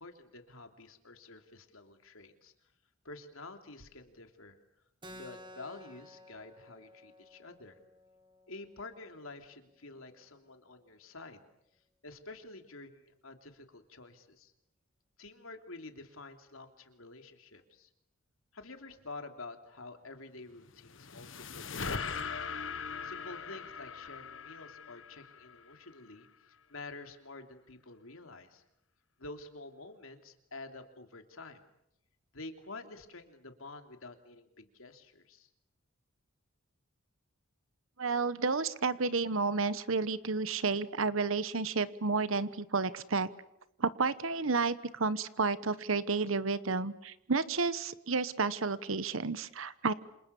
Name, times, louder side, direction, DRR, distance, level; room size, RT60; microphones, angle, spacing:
voice 1, 0.0-2.5 3.0-4.6 5.1-7.8 8.5-11.5 12.0-14.5 15.2-17.9 18.5-22.4 23.0-28.6 29.2-31.6 32.3-35.5, left 3 dB, 80° left, 6 dB, 3.1 m, -49 dB
Keyboard (musical), 5.0-10.1, left 1 dB, 20° right, 1.9 m, -55 dB
sound 1, 20.5-25.9, left 5 dB, 65° left, 1.5 m, -40 dB
voice 2, 38.0-43.3 43.8-49.9, right 4 dB, 75° right, 15 dB, 1.1 m, -31 dB
28.0 x 27.5 x 7.1 m, 0.80 s
head